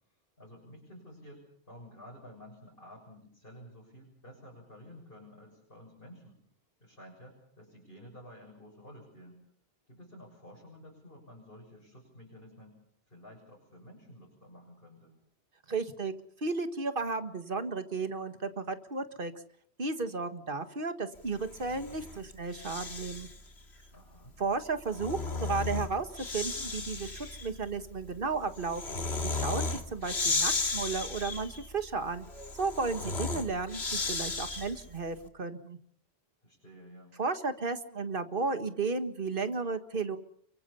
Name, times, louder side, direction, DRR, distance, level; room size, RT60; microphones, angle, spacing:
voice 1, 0.4-6.4 6.8-9.4 9.9-12.8 13.1-15.2 23.9-24.4 36.4-37.2, equal, 60° left, -2 dB, 7.3 m, -52 dB
voice 2, 15.7-16.1 16.4-19.3 19.8-23.3 24.4-32.3 32.6-35.8 37.2-40.2, right 4 dB, 55° right, 9 dB, 1.9 m, -34 dB
Breathing, 21.4-23.4 24.7-34.9, left 3 dB, 80° left, 2.4 m, -35 dB
29.0 x 24.0 x 5.7 m, 0.63 s
omnidirectional pair, 1.1 m